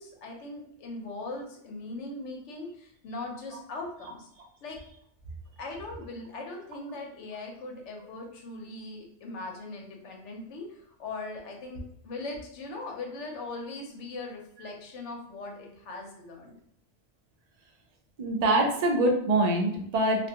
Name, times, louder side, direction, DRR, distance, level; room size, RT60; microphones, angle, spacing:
voice 1, 0.0-4.3 4.6-4.8 5.6-16.6, left 2 dB, 75° left, 1 dB, 0.9 m, -40 dB
voice 2, 18.2-20.3, right 1 dB, 65° right, 1 dB, 0.4 m, -24 dB
2.3 x 2.2 x 2.7 m, 0.71 s
omnidirectional pair, 1.2 m